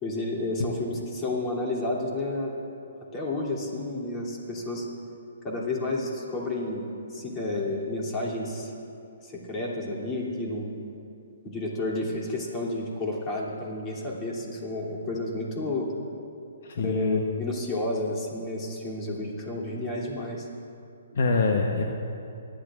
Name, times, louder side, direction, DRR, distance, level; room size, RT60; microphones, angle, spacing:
voice 1, 0.0-2.5 3.1-4.8 5.4-8.7 9.2-10.8 11.4-15.9 16.8-20.5, left 2 dB, 25° left, -3 dB, 3.0 m, -31 dB
voice 2, 16.6-17.2 21.1-21.8, left 4 dB, 60° left, 2 dB, 1.1 m, -24 dB
28.0 x 11.5 x 2.5 m, 2.6 s
hypercardioid pair, 135°, 0 cm